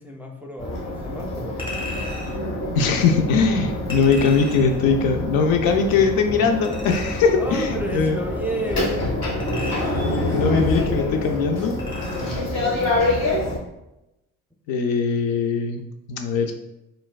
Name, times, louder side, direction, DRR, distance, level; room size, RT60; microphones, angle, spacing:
voice 1, 0.0-1.7 7.1-9.0 12.1-13.5, right 2 dB, 5° right, 1 dB, 0.4 m, -33 dB
sound 1, 0.6-13.6, left 2 dB, 45° left, 0.9 m, -26 dB
Chink clink, 1.6-2.4 3.9-4.8 6.6-7.4 9.2-10.2 11.8-12.4 12.8-12.9, left 2 dB, 10° left, 1.2 m, -36 dB
voice 2, 2.7-8.2 10.3-11.8 14.7-16.5, left 5 dB, 65° left, 5 dB, 0.5 m, -21 dB
3.8 x 2.3 x 2.3 m, 0.92 s
hypercardioid pair, 45°, 40 cm